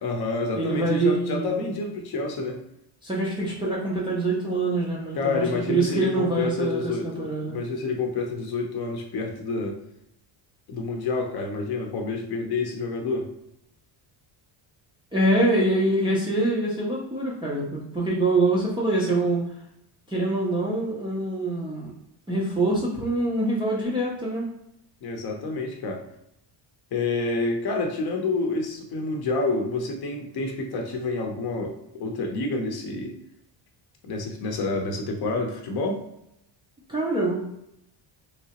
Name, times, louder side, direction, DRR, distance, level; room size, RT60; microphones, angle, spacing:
voice 1, 0.0-2.6 5.1-9.8 10.7-13.3 25.0-26.0 26.9-33.1 34.0-36.0, left 3 dB, 50° left, 3 dB, 0.6 m, -28 dB
voice 2, 0.5-1.6 3.0-7.6 15.1-19.4 20.1-21.9 22.3-24.5 36.9-37.4, right 2 dB, 10° right, -6 dB, 0.3 m, -25 dB
3.2 x 2.8 x 2.8 m, 0.80 s
cardioid pair, 175°, 49 cm